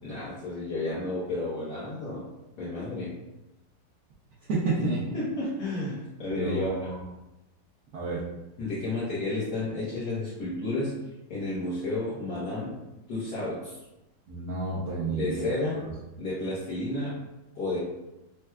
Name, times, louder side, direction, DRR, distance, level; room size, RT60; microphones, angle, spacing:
voice 1, 0.0-2.2 2.6-3.1 4.8-4.9 5.1-6.9 8.6-10.9 11.3-12.7 13.1-13.8 15.1-15.8 16.2-17.1 17.5-17.8, left 2 dB, 60° left, -10 dB, 1.3 m, -31 dB
voice 2, 4.5-5.0 6.3-7.0 7.9-8.3 14.3-15.5, right 3 dB, 75° right, -7 dB, 0.9 m, -30 dB
4.4 x 2.2 x 2.3 m, 0.94 s
omnidirectional pair, 2.3 m